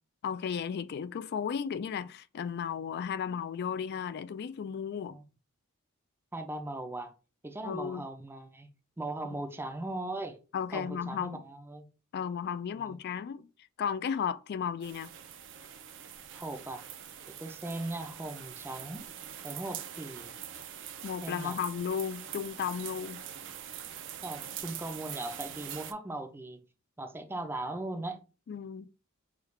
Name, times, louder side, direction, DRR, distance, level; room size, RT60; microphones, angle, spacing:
voice 1, 0.2-5.2 7.6-8.1 10.5-11.4 12.1-13.5 13.8-15.1 21.0-23.2 28.5-28.9, left 7 dB, 50° left, 0.3 m, -34 dB
voice 2, 6.3-7.1 7.4-8.7 9.0-10.4 10.7-11.9 12.8-13.0 16.3-16.8 17.3-19.1 19.4-20.4 21.2-21.6 24.2-26.6 27.0-28.2, right 2 dB, 10° right, 0.5 m, -39 dB
sound 1, 14.8-25.9, right 9 dB, 60° right, 0.5 m, -44 dB
4.9 x 2.3 x 3.1 m
head